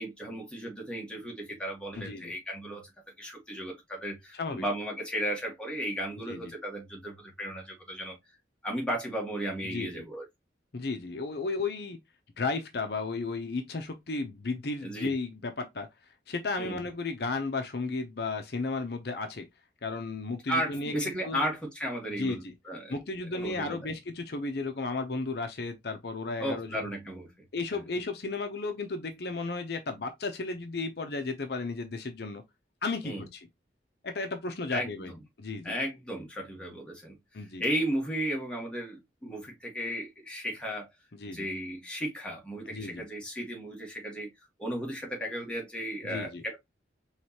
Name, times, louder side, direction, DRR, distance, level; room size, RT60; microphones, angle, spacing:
voice 1, 0.0-2.9 3.2-8.2 8.6-10.3 14.8-15.1 16.6-16.8 20.5-22.9 23.3-23.8 26.4-27.3 27.7-27.9 33.0-33.3 34.7-35.2 35.6-40.9 41.2-44.3 44.6-46.6, equal, 5° left, 1.6 m, -35 dB
voice 2, 2.0-2.3 4.3-4.6 6.3-6.5 9.6-10.0 10.7-12.0 12.4-15.9 16.3-19.5 19.8-21.5 22.1-22.5 22.9-26.9 27.5-32.4 32.8-33.5 34.0-35.1 35.4-35.8 37.3-37.6 41.1-41.5 42.7-43.1 46.0-46.4, left 3 dB, 60° left, 0.7 m, -34 dB
4.8 x 3.2 x 2.9 m
head